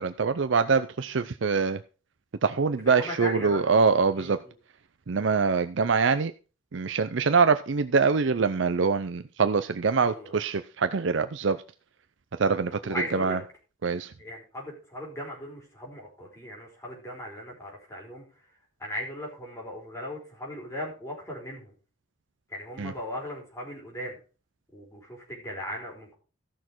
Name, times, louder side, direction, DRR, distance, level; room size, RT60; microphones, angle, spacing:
voice 1, 0.0-1.8 2.4-4.4 5.1-6.3 6.7-11.6 12.4-13.4 13.8-14.1 22.8-22.9, right 5 dB, 65° right, 10 dB, 0.5 m, -24 dB
voice 2, 2.8-3.7 4.1-4.5 10.0-10.3 12.6-13.4 14.2-18.2 18.8-21.7 22.5-24.2 24.7-26.1, equal, 15° left, -2 dB, 4.8 m, -38 dB
14.5 x 6.4 x 4.6 m, 0.35 s
head